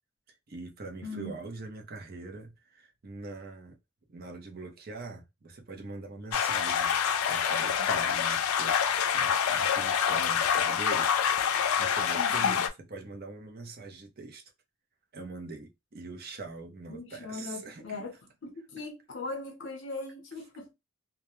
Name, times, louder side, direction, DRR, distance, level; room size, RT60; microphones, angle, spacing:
voice 1, 0.5-3.8 4.1-11.1 11.8-14.4 15.1-18.1, right 3 dB, 45° right, 0.5 m, -43 dB
voice 2, 1.0-1.3 12.1-12.6 16.9-18.2 18.4-20.7, left 2 dB, 55° left, 0.7 m, -39 dB
sound 1, 6.3-12.7, left 7 dB, 85° left, 0.4 m, -26 dB
2.2 x 2.1 x 2.9 m
head